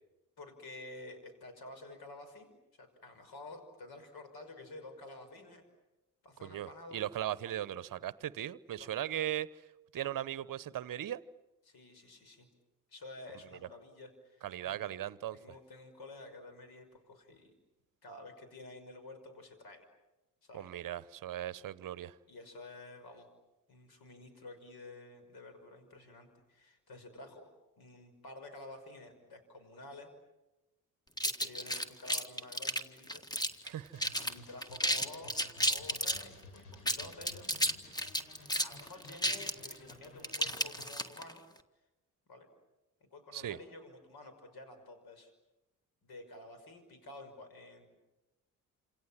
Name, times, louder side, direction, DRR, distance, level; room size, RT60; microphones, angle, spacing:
voice 1, 0.4-2.5 2.8-5.6 6.2-7.0 8.8-8.9 11.7-12.5 12.9-14.8 15.3-17.6 18.0-19.9 20.4-20.7 22.3-23.3 23.7-30.1 31.2-33.2 34.2-35.4 35.7-37.5 38.6-41.4 42.3-42.5 43.0-45.3 46.0-47.9, left 2 dB, 55° left, 5.9 m, -51 dB
voice 2, 6.4-9.6 9.9-11.2 14.4-15.4 20.5-22.2 33.6-34.1 43.3-43.6, right 12 dB, 45° right, 1.0 m, -38 dB
sound 1, 31.2-33.7 34.0-34.3 34.6-36.2 36.7-41.3, equal, 10° left, 1.8 m, -32 dB
sound 2, 33.9-40.9, left 2 dB, 70° left, 6.6 m, -55 dB
29.0 x 27.5 x 7.5 m
hypercardioid pair, 50°, 45 cm